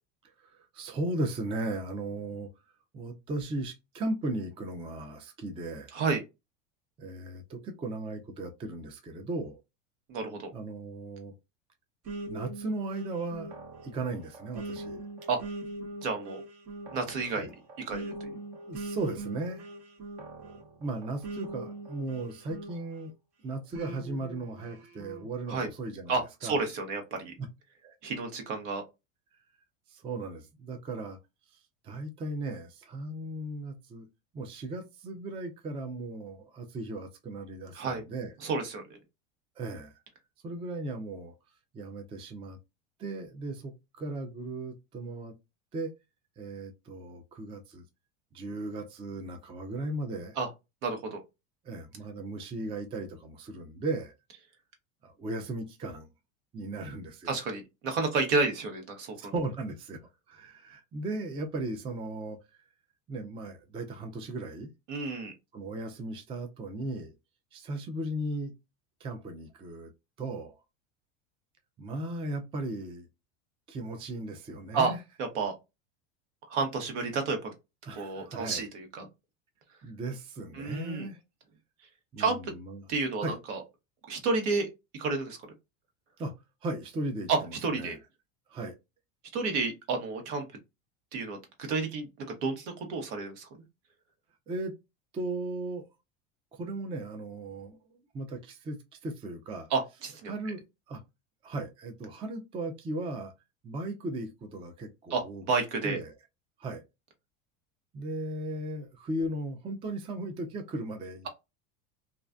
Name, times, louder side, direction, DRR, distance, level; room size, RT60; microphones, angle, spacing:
voice 1, 0.4-2.5 2.9-5.9 7.0-9.6 10.5-11.3 12.3-13.5 13.8-15.0 17.3-17.5 18.7-19.7 20.8-23.1 23.4-26.2 26.4-26.6 27.8-27.9 29.9-31.2 31.8-34.1 34.3-38.3 39.6-39.9 40.4-41.3 41.7-42.6 43.0-45.3 45.7-45.9 46.4-47.8 48.3-50.4 51.6-54.1 55.0-56.1 56.5-57.4 59.2-60.0 60.3-62.6 63.1-64.7 65.5-67.1 67.5-68.5 69.0-69.9 70.2-70.6 71.8-73.1 73.7-75.0 77.9-78.7 79.8-81.2 82.1-82.8 83.2-83.4 86.2-86.3 86.6-88.0 88.5-88.7 94.5-94.7 95.1-95.8 96.5-97.8 98.1-99.7 100.3-101.0 101.4-103.3 103.6-105.4 105.8-106.1 106.6-106.8 107.9-111.3, right 2 dB, 15° right, 0.3 m, -36 dB
voice 2, 5.9-6.2 10.1-10.5 15.3-15.4 16.0-16.4 16.9-17.5 17.9-18.3 25.5-25.7 26.1-27.3 28.0-28.8 37.7-38.0 38.4-38.8 50.4-50.5 50.8-51.2 57.3-59.3 64.9-65.3 74.7-74.9 75.2-75.5 76.5-77.5 77.9-79.1 80.5-81.1 82.2-82.5 82.9-83.6 84.1-84.7 84.9-85.4 87.3-88.0 89.3-90.4 91.1-93.5 99.7-100.3 105.1-106.0, right 4 dB, 65° right, 1.1 m, -31 dB
sound 1, 12.0-23.1 23.7-25.3, right 2 dB, 45° right, 1.0 m, -42 dB
2.4 x 2.1 x 2.4 m
supercardioid pair, 110°, 38 cm